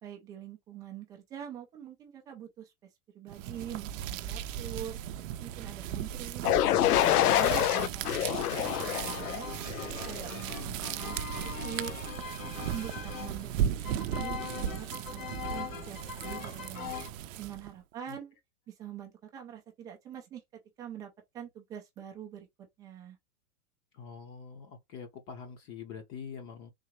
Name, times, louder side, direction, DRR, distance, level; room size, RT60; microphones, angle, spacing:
voice 1, 0.0-2.7 3.1-5.0 5.4-8.4 8.8-9.5 9.9-11.9 12.2-12.4 12.7-16.9 17.4-18.4 18.7-20.4 20.8-22.5 22.8-23.2, right 10 dB, 10° right, 0.3 m, -44 dB
sound 1, 3.3-17.7, right 10 dB, 60° right, 0.5 m, -37 dB
sound 2, 6.4-10.3, left 13 dB, 90° left, 0.5 m, -27 dB
sound 3, 8.6-17.1, left 7 dB, 70° left, 1.1 m, -42 dB
voice 2, 23.9-26.7, left 6 dB, 30° left, 0.9 m, -44 dB
3.7 x 2.7 x 3.0 m
hypercardioid pair, 140°, 44 cm